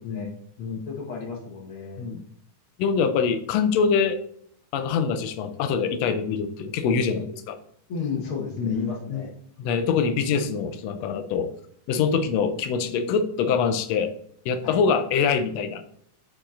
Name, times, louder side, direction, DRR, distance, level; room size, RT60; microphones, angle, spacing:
voice 1, 0.9-2.0 7.9-9.3 14.6-14.8, left 5 dB, 50° left, -1 dB, 1.8 m, -33 dB
voice 2, 2.8-4.2 4.7-7.6 8.6-9.3 9.6-11.5 11.9-14.1 14.4-15.8, left 6 dB, 85° left, 8 dB, 1.5 m, -24 dB
8.5 x 4.8 x 2.5 m, 0.67 s
omnidirectional pair, 3.6 m